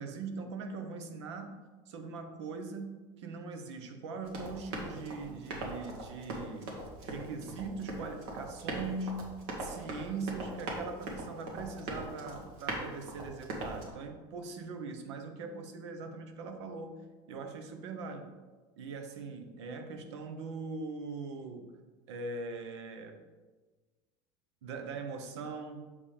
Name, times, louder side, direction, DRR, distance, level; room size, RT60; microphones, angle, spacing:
voice 1, 0.0-1.6 1.9-6.7 7.0-9.3 9.6-17.0 17.3-18.3 18.8-21.7 22.1-23.2 24.6-25.9, right 4 dB, 90° right, 6 dB, 1.0 m, -41 dB
Run, 4.2-13.9, right 2 dB, 70° right, 1.7 m, -40 dB
6.9 x 5.4 x 3.4 m, 1.3 s
supercardioid pair, 140°, 14 cm